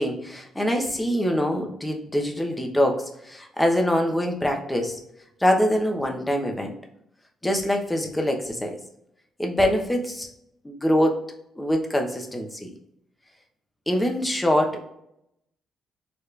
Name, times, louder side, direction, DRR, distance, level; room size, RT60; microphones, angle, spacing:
voice 1, 0.0-5.0 5.4-6.7 7.4-8.8 9.4-10.3 10.6-11.2 11.6-12.7 13.9-14.9, equal, 10° left, 3 dB, 0.9 m, -24 dB
4.9 x 3.1 x 3.2 m, 0.78 s
cardioid pair, 90°, 0 cm